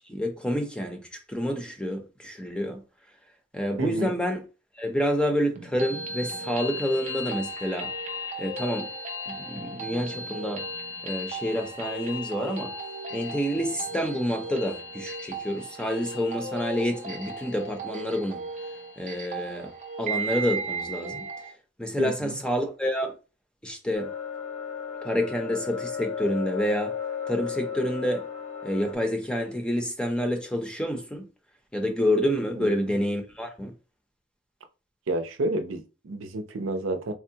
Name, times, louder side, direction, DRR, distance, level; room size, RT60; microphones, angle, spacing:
voice 1, 0.0-2.8 3.5-4.4 4.8-7.9 8.4-8.9 9.3-10.7 11.0-12.7 13.1-18.4 19.0-19.7 20.0-21.2 21.8-23.1 23.6-24.1 25.0-27.0 27.3-28.3 28.6-31.2 31.7-33.7, equal, 5° left, 0.6 m, -28 dB
voice 2, 3.8-4.1 22.0-22.4 32.6-32.7 35.1-37.1, right 2 dB, 85° right, 0.5 m, -30 dB
sound 1, 5.6-21.5, right 1 dB, 40° right, 0.5 m, -36 dB
sound 2, 23.9-28.9, left 7 dB, 70° left, 1.1 m, -34 dB
3.5 x 2.2 x 2.7 m
head